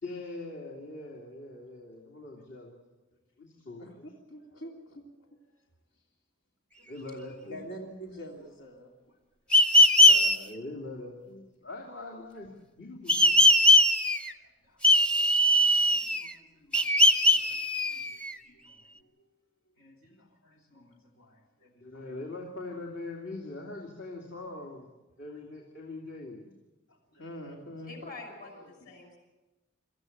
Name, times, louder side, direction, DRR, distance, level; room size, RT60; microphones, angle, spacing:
voice 1, 0.0-2.8 3.4-4.1 6.9-7.9 10.0-13.5 21.8-24.9 25.2-26.5 28.4-28.7, left 2 dB, 65° left, -1 dB, 2.7 m, -42 dB
voice 2, 3.8-5.6 6.8-7.2 7.4-9.2 9.5-9.6 14.1-14.9 15.5-19.3 19.8-22.2 26.9-27.9, equal, 90° left, 0 dB, 3.1 m, -49 dB
sound 1, 9.5-10.4 13.1-14.3 14.8-16.3 16.7-18.3, left 1 dB, 5° left, 0.7 m, -20 dB
voice 3, 27.9-29.2, left 2 dB, 45° left, 3 dB, 5.7 m, -45 dB
24.5 x 14.0 x 8.0 m, 1.1 s
head